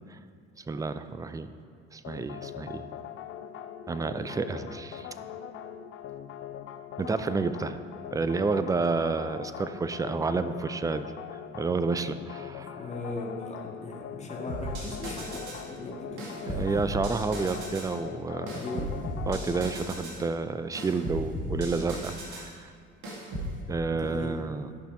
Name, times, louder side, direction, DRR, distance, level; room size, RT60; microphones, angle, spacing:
voice 1, 0.7-1.5 1.9-2.9 3.9-5.1 7.0-7.8 8.1-11.1 11.5-12.8 16.5-18.6 19.3-22.7 23.7-24.8, right 4 dB, 10° right, 11 dB, 0.4 m, -30 dB
sound 1, 2.0-20.0, left 10 dB, 40° left, 0.6 m, -42 dB
voice 2, 12.8-16.8 18.5-18.9 23.9-24.4, left 2 dB, 20° left, -2 dB, 1.9 m, -38 dB
sound 2, 14.5-15.7 16.2-17.9 18.5-20.2 20.7-22.5 23.0-23.5, equal, 60° right, 2.2 m, -36 dB
11.5 x 5.6 x 4.9 m, 2.3 s
hypercardioid pair, 65°, 33 cm